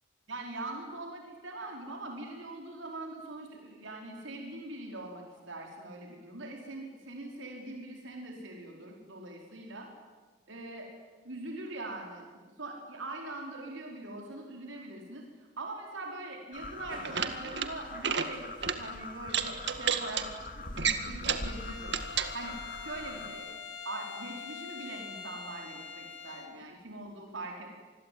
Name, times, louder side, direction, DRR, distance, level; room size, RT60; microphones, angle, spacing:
voice 1, 0.3-9.9 10.5-10.9 11.2-12.3 12.6-15.2 15.6-18.4 18.7-20.3 20.7-22.0 22.3-23.5 23.8-27.7, right 2 dB, 80° right, 1 dB, 4.9 m, -42 dB
sound 1, 16.5-23.3, left 2 dB, 45° left, 2.6 m, -43 dB
sound 2, 16.9-17.7 18.0-18.3 18.6-18.8 19.3-20.2 20.8-21.5 21.9-22.3, right 7 dB, 60° right, 2.0 m, -30 dB
Bowed string instrument, 21.3-26.6, left 5 dB, 70° left, 3.0 m, -44 dB
27.0 x 21.5 x 9.6 m, 1.3 s
head